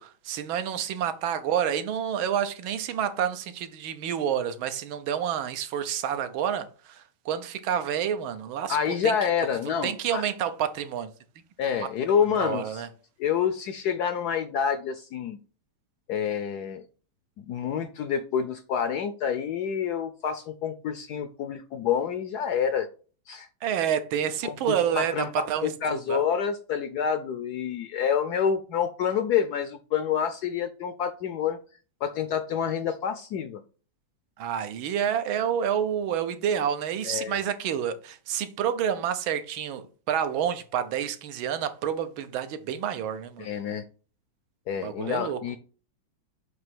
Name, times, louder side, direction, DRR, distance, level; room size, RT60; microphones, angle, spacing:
voice 1, 0.0-8.8 9.0-9.1 9.8-11.1 12.4-12.9 23.6-26.2 34.4-43.5 44.8-45.4, right 9 dB, 85° right, 1.6 m, -29 dB
voice 2, 8.7-10.2 11.6-12.8 13.2-15.4 16.1-16.8 17.4-22.9 23.3-23.5 24.4-25.3 25.6-31.6 32.0-33.6 37.0-37.4 43.4-43.8 44.7-45.6, left 7 dB, 75° left, 0.9 m, -28 dB
7.6 x 2.9 x 6.0 m
omnidirectional pair, 2.2 m